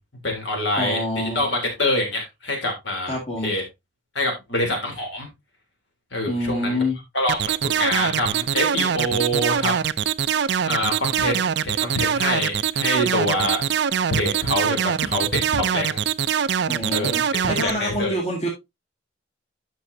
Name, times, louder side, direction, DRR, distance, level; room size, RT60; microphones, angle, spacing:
voice 1, 0.2-3.2 3.4-3.6 4.1-5.3 6.1-6.8 7.1-9.9 10.7-13.6 14.1-16.0 16.9-17.2 17.4-18.1, left 1 dB, 65° left, 3.3 m, -25 dB
voice 2, 0.8-1.5 3.1-3.5 6.3-7.0 16.7-18.5, left 1 dB, 35° left, 2.2 m, -26 dB
sound 1, 7.3-17.7, right 8 dB, 60° right, 0.4 m, -23 dB
11.5 x 6.2 x 2.7 m
head